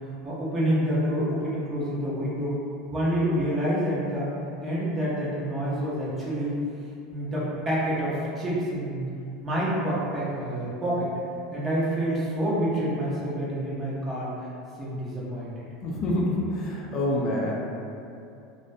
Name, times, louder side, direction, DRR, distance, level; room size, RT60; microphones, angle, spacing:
voice 1, 0.2-2.6 2.9-4.3 4.6-6.5 7.1-9.0 9.4-11.1 11.5-14.3 14.8-15.6, equal, 15° right, -8 dB, 0.6 m, -27 dB
voice 2, 15.8-17.6, left 1 dB, 40° left, -3 dB, 0.3 m, -27 dB
2.4 x 2.0 x 2.5 m, 2.6 s
supercardioid pair, 150°, 0 cm